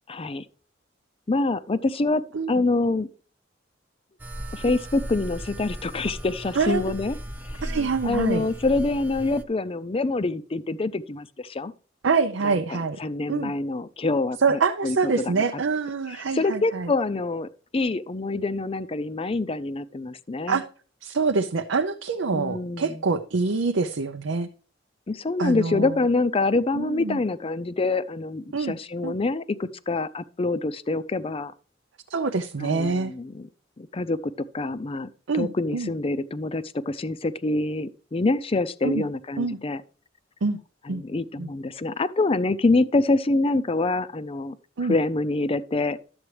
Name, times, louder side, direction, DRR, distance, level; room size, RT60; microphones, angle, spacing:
voice 1, 0.1-0.4 1.3-3.1 4.5-7.2 7.5-11.7 12.4-15.4 16.1-20.6 22.3-23.0 25.1-31.5 32.6-33.5 33.8-35.1 35.3-39.8 40.8-44.6 44.8-46.0, left 2 dB, 30° left, 0.5 m, -26 dB
Eerie background space sound, 4.2-9.4, equal, 10° right, 0.8 m, -37 dB
voice 2, 7.6-8.5 12.0-13.0 13.3-13.5 14.4-16.9 20.5-20.6 21.0-24.5 25.4-26.0 26.7-27.2 28.5-28.7 29.0-29.1 32.1-33.1 35.3-35.9 38.8-39.0 39.4-39.6 40.4-40.6 40.9-41.0 41.4-41.5 44.8-44.9, right 4 dB, 90° right, 0.6 m, -25 dB
12.0 x 7.9 x 3.2 m
head